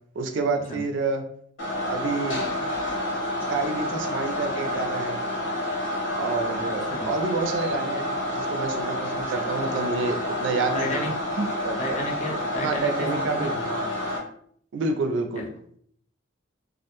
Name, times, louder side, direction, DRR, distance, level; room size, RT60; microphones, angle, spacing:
voice 1, 0.2-1.2 1.9-2.4 3.4-5.2 6.2-12.0 12.6-13.9 14.7-15.5, right 4 dB, 70° right, 5 dB, 0.4 m, -29 dB
sound 1, 1.6-14.2, left 1 dB, 75° left, 1.0 m, -29 dB
voice 2, 10.7-11.1 11.8-13.5 15.3-15.5, left 1 dB, 35° left, -1 dB, 0.5 m, -32 dB
2.4 x 2.1 x 2.9 m, 0.63 s
head